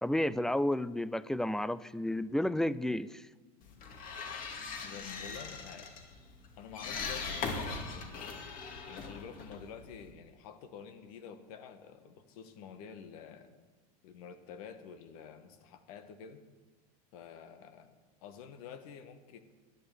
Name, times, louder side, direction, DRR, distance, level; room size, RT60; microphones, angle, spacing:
voice 1, 0.0-3.2, left 1 dB, 5° left, 18 dB, 0.4 m, -31 dB
sound 1, 3.6-10.1, left 4 dB, 45° left, 2.5 m, -41 dB
voice 2, 4.8-5.9 6.6-8.5 8.9-13.5 14.0-16.4 17.1-19.4, left 7 dB, 70° left, 9 dB, 1.6 m, -49 dB
12.5 x 9.8 x 8.0 m, 1.3 s
supercardioid pair, 110°, 19 cm